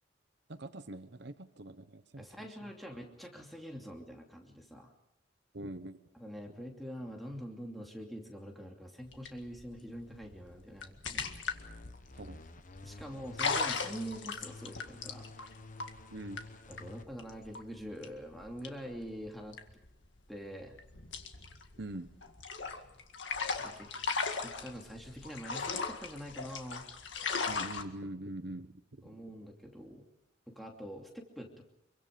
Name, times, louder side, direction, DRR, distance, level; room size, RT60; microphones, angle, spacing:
voice 1, 0.5-2.2 2.6-2.7 5.5-6.0 12.2-12.4 16.1-16.4 21.8-22.1 27.5-28.7, right 1 dB, 60° right, 10 dB, 1.1 m, -43 dB
voice 2, 2.2-4.9 6.1-11.2 12.8-15.5 16.7-19.6 20.3-20.7 23.6-23.9 24.4-26.9 29.0-30.0 30.5-31.6, equal, ahead, 0 dB, 2.7 m, -45 dB
sound 1, 9.1-20.3 20.6-27.8, left 4 dB, 70° left, 2.0 m, -38 dB
sound 2, 11.3-17.1, left 2 dB, 45° left, 1.0 m, -51 dB
26.0 x 24.0 x 5.3 m, 0.83 s
head